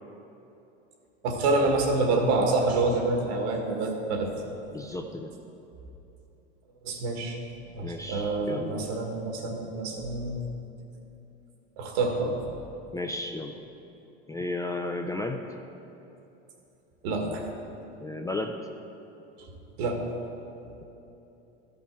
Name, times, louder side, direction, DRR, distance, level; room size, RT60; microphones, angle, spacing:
voice 1, 1.2-4.3 6.8-7.4 7.7-10.4 11.8-12.3 17.0-17.4 19.8-20.0, right 3 dB, 70° right, 3 dB, 1.6 m, -27 dB
voice 2, 4.7-5.3 7.8-8.9 12.9-13.5 14.3-15.4 18.0-18.6, left 2 dB, 10° left, 4 dB, 0.3 m, -33 dB
13.0 x 5.5 x 4.5 m, 3.0 s
hypercardioid pair, 90°, 33 cm